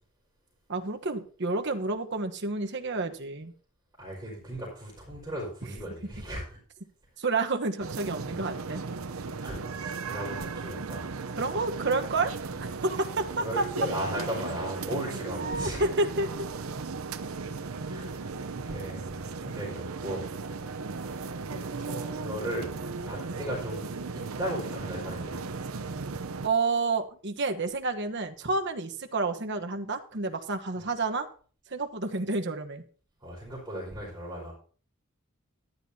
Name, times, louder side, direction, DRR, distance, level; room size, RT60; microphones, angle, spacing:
voice 1, 0.7-3.5 7.2-8.8 11.4-12.3 12.6-13.6 15.4-16.5 26.4-31.3 31.7-32.8, right 3 dB, 55° right, 6 dB, 1.2 m, -29 dB
voice 2, 4.0-6.6 9.4-11.1 13.4-15.8 17.7-20.3 20.9-21.2 21.5-22.7 23.0-25.4 30.7-30.9 33.2-34.5, equal, 15° right, -7 dB, 4.9 m, -37 dB
sound 1, 7.8-26.5, right 4 dB, 80° right, 0.7 m, -36 dB
14.5 x 11.5 x 2.8 m, 0.42 s
head